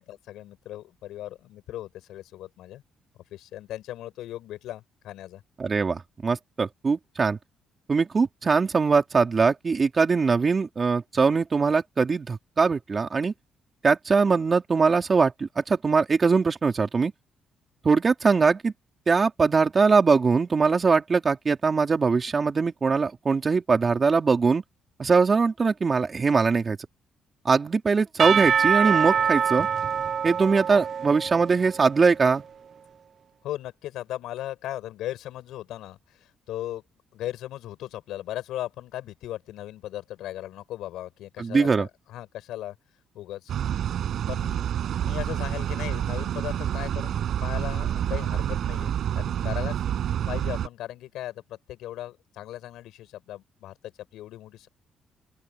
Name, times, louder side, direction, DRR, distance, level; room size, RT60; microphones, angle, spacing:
voice 1, 0.0-2.8 3.3-5.4 33.4-36.8 37.1-42.8 43.1-43.5 44.3-44.7 44.9-49.8 50.3-54.7, left 13 dB, 85° left, 6.1 m, -37 dB
voice 2, 5.6-7.4 7.9-13.3 13.8-17.1 17.8-18.7 19.1-24.6 25.0-26.8 27.4-29.7 30.2-32.4 41.4-41.9, right 4 dB, 35° right, 3.9 m, -22 dB
Percussion / Church bell, 28.2-32.1, right 7 dB, 50° right, 0.6 m, -25 dB
sound 1, 43.5-50.7, right 10 dB, 70° right, 8.0 m, -28 dB
open air
cardioid pair, 90°, 0 cm